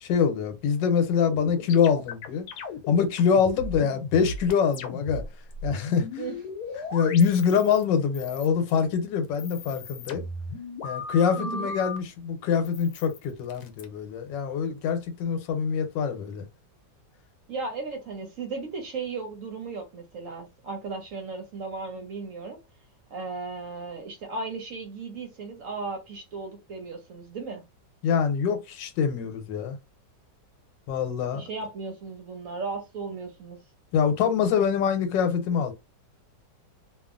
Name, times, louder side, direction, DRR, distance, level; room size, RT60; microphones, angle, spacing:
voice 1, 0.0-2.5 2.9-5.2 5.6-6.2 6.9-10.2 10.8-16.5 28.0-29.8 30.9-31.4 33.9-35.7, left 7 dB, 90° left, 1.4 m, -24 dB
sound 1, 1.3-5.3 5.5-7.8 8.1-8.8 9.2-12.0 12.6-13.8, left 3 dB, 70° left, 1.1 m, -37 dB
voice 2, 11.4-11.7 17.5-22.6 23.1-27.6 31.3-33.6, right 4 dB, 65° right, 0.9 m, -36 dB
2.8 x 2.4 x 2.4 m
omnidirectional pair, 1.9 m